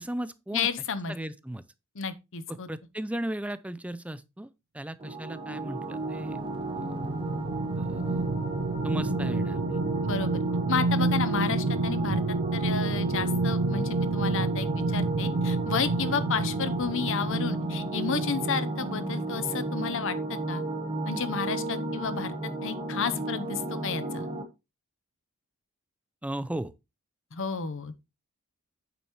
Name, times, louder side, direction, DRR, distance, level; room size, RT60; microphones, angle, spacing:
voice 1, 0.0-0.7 1.1-1.6 2.5-4.5 4.7-6.4 6.8-6.9 7.8-8.3 8.8-9.8 26.2-26.7, right 1 dB, 5° right, 0.4 m, -36 dB
voice 2, 0.5-1.1 2.0-2.7 10.0-10.4 10.7-12.2 12.5-20.6 21.0-22.3 22.6-24.3 27.3-28.0, left 5 dB, 60° left, 0.8 m, -31 dB
sound 1, 5.0-24.4, right 2 dB, 25° right, 1.3 m, -33 dB
sound 2, 5.9-18.8 19.3-19.4, right 3 dB, 85° right, 0.5 m, -30 dB
8.9 x 7.0 x 3.1 m
head